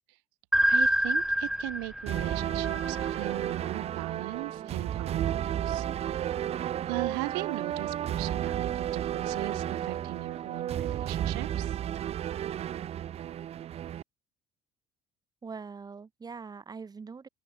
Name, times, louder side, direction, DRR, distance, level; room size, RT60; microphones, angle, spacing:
sound 1, 0.5-3.5, equal, 5° right, 1.4 m, -27 dB
voice 1, 0.7-6.4 6.9-11.8, right 31 dB, 80° right, 2.2 m, -38 dB
sound 2, 2.1-14.0, right 11 dB, 50° right, 1.4 m, -32 dB
voice 2, 15.4-17.3, right 5 dB, 30° right, 5.1 m, -42 dB
open air
hypercardioid pair, 70°, 13 cm